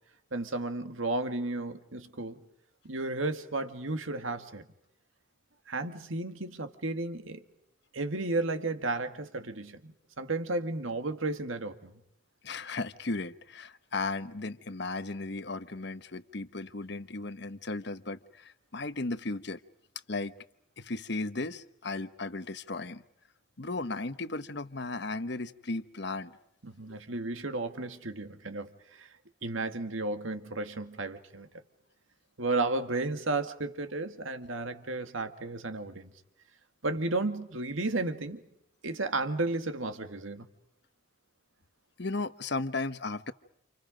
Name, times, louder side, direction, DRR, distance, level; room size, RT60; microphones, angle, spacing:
voice 1, 0.3-2.4 2.8-4.6 5.7-7.4 7.9-11.9 26.6-29.1 29.4-31.5 32.4-36.1 36.8-38.4 38.8-40.5, right 2 dB, 80° right, 2.1 m, -33 dB
voice 2, 12.4-19.6 20.1-20.3 20.8-23.0 23.6-26.4 26.9-27.0 42.0-43.3, left 3 dB, 55° left, 1.1 m, -35 dB
29.5 x 29.0 x 5.2 m
head